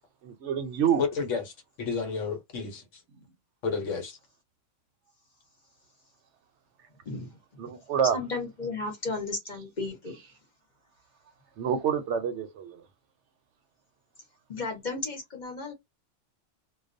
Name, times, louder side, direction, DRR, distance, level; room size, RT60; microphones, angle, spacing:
voice 1, 0.2-1.0 7.6-8.2 11.6-12.8, right 8 dB, 70° right, 0.8 m, -27 dB
voice 2, 1.0-3.0 3.6-4.2, left 5 dB, 75° left, 1.1 m, -31 dB
voice 3, 7.0-7.4 8.1-10.2 14.5-15.7, left 3 dB, 40° left, 1.0 m, -34 dB
2.3 x 2.2 x 2.5 m
omnidirectional pair, 1.3 m